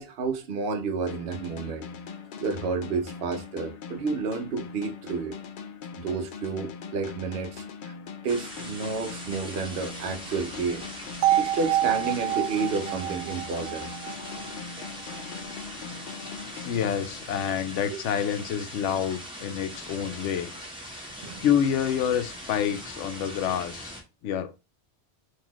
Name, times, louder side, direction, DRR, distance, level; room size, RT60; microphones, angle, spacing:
voice 1, 0.0-1.9 2.4-5.4 6.0-7.9 8.2-10.9 11.4-13.9 21.2-21.4, right 4 dB, 60° right, 0.8 m, -31 dB
sound 1, 1.1-17.7, left 6 dB, 60° left, 0.5 m, -41 dB
sound 2, 8.3-24.0, equal, 5° right, 1.0 m, -41 dB
sound 3, 11.2-15.2, right 13 dB, 85° right, 0.9 m, -27 dB
voice 2, 16.6-20.5 21.1-23.9 24.2-24.6, left 9 dB, 80° left, 0.9 m, -28 dB
3.9 x 2.7 x 3.0 m
omnidirectional pair, 1.2 m